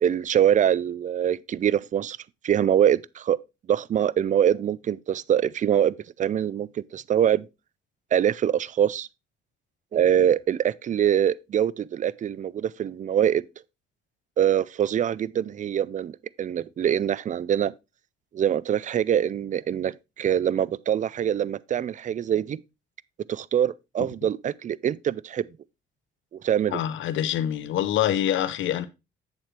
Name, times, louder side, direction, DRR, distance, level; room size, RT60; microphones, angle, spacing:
voice 1, 0.0-2.2 2.4-3.4 3.7-7.5 8.1-9.1 9.9-13.4 14.4-17.7 18.3-22.6 23.3-25.5 26.4-26.8, right 9 dB, 40° right, 0.4 m, -24 dB
voice 2, 26.7-28.8, left 11 dB, 75° left, 0.8 m, -25 dB
7.6 x 7.3 x 3.2 m
cardioid pair, 90°, 20 cm